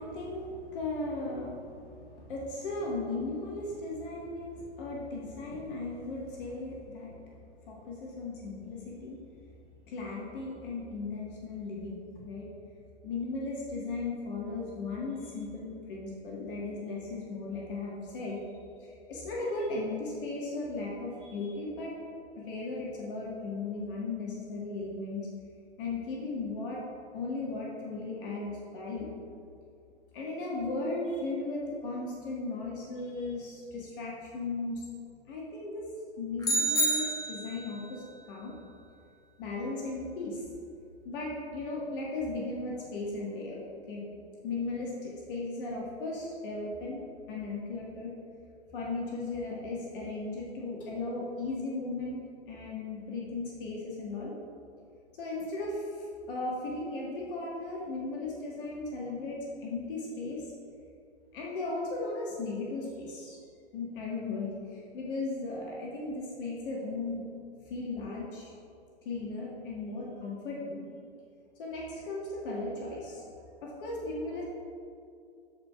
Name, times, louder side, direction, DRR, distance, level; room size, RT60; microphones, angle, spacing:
voice 1, 0.0-7.1 7.7-9.2 9.9-12.5 13.0-18.4 18.8-21.9 22.4-25.3 25.8-26.8 27.1-29.1 30.1-34.9 35.3-35.9 36.2-38.5 39.4-40.4 41.0-43.6 43.9-44.0 44.4-47.0 47.3-48.1 48.7-54.3 55.2-60.4 61.3-63.4 63.7-67.3 67.7-68.5 69.0-70.8 71.6-73.3 73.6-74.4, left 3 dB, 50° left, -4 dB, 1.5 m, -36 dB
sound 1, 36.4-37.8, right 1 dB, 10° left, 1.0 m, -28 dB
13.5 x 4.5 x 2.4 m, 2.4 s
hypercardioid pair, 125°, 33 cm